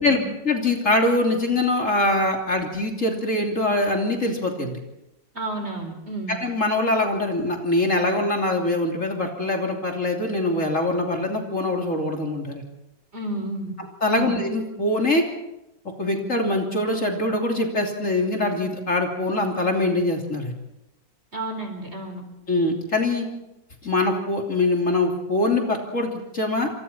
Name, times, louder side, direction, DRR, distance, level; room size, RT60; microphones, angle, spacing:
voice 1, 0.5-4.8 6.3-12.6 14.0-15.2 16.0-20.5 22.5-23.3 23.8-26.7, left 2 dB, 45° left, 1 dB, 3.4 m, -23 dB
voice 2, 5.3-6.4 13.1-13.7 14.1-14.4 21.3-22.2, right 2 dB, 35° right, 5 dB, 4.4 m, -31 dB
28.5 x 26.5 x 4.4 m, 0.89 s
omnidirectional pair, 2.0 m